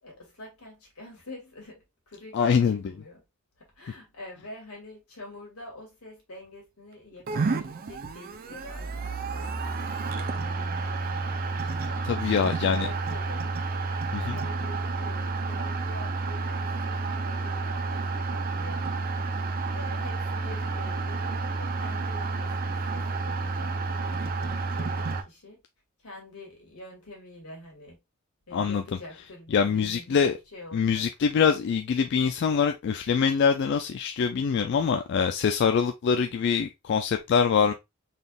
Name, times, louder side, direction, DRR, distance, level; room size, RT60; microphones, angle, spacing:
voice 1, 0.0-3.2 3.6-13.5 13.9-19.0 19.3-25.6 26.0-28.0 28.5-31.1, left 1 dB, 80° left, 2.1 m, -46 dB
voice 2, 2.3-2.8 12.1-12.9 14.1-14.4 28.5-28.8 29.5-30.3 30.7-37.7, left 6 dB, 55° left, 0.3 m, -24 dB
sound 1, 7.3-25.2, right 3 dB, 45° right, 0.5 m, -30 dB
4.1 x 3.5 x 2.3 m
head